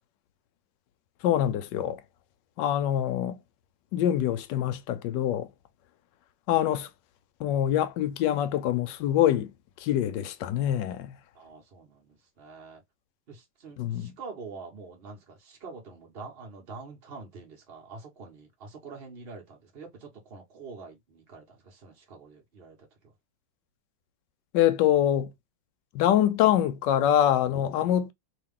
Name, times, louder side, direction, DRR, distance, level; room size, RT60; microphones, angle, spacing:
voice 1, 1.2-2.0 2.6-3.3 3.9-5.5 6.5-6.9 7.4-9.5 9.8-11.2 13.8-14.1 24.5-25.3 25.9-28.1, left 11 dB, 75° left, 1.2 m, -24 dB
voice 2, 11.3-12.8 13.3-22.8, right 4 dB, 35° right, 1.3 m, -45 dB
3.0 x 3.0 x 3.6 m
omnidirectional pair, 2.1 m